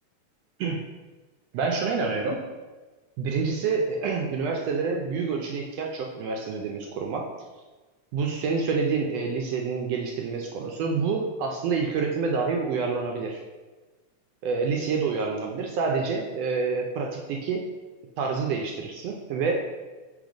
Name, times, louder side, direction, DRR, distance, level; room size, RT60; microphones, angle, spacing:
voice 1, 1.5-2.4 3.2-7.3 8.1-13.4 14.4-17.6 18.2-19.5, right 4 dB, 75° right, 1 dB, 1.6 m, -27 dB
6.5 x 3.4 x 5.0 m, 1.3 s
omnidirectional pair, 3.3 m